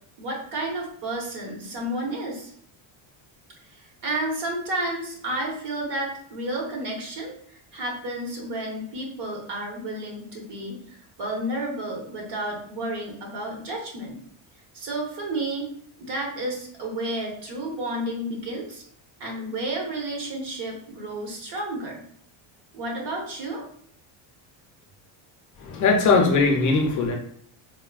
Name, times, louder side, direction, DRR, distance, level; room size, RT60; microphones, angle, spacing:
voice 1, 0.2-2.5 3.7-7.3 7.7-10.8 11.2-14.2 14.7-15.7 16.0-18.8 19.2-22.0 22.7-23.6, right 1 dB, 60° right, -1 dB, 1.2 m, -31 dB
voice 2, 25.6-27.1, left 4 dB, 40° left, 2 dB, 0.5 m, -20 dB
4.1 x 2.1 x 2.3 m, 0.63 s
cardioid pair, 130°, 48 cm